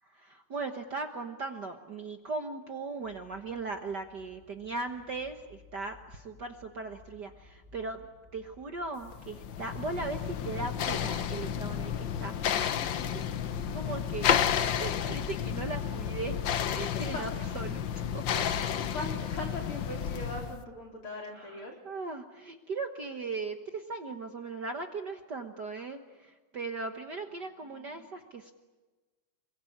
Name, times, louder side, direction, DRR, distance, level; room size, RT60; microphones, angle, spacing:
voice 1, 0.0-12.8 13.1-13.2 13.7-16.4 16.7-17.9 18.1-18.4 21.3-28.5, right 3 dB, 50° right, 6 dB, 1.4 m, -38 dB
sound 1, 3.0-20.7, left 4 dB, 5° left, 6.9 m, -57 dB
sound 2, 9.1-20.6, left 9 dB, 75° left, 1.0 m, -31 dB
voice 2, 18.7-21.8 27.7-28.0, left 2 dB, 45° left, 0 dB, 4.7 m, -40 dB
28.0 x 23.0 x 8.6 m, 1.3 s
omnidirectional pair, 3.4 m